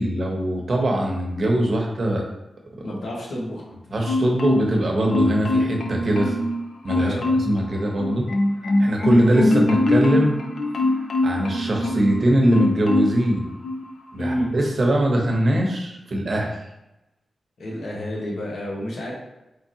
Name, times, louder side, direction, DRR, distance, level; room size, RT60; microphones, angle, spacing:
voice 1, 0.0-2.2 3.9-6.3 6.8-8.3 8.8-10.3 11.2-13.4 14.1-16.6, right 1 dB, 55° right, 0 dB, 0.9 m, -21 dB
voice 2, 2.8-3.7 7.0-7.3 14.2-14.5 17.6-19.1, equal, 85° left, -4 dB, 1.3 m, -29 dB
Marimba xylophone, 4.1-4.8 5.1-6.5 6.9-7.6 8.0-12.2 12.5-13.2 13.6-13.8, left 2 dB, 65° left, 0.6 m, -22 dB
4.6 x 3.5 x 2.8 m, 0.95 s
wide cardioid pair, 90°, 0 cm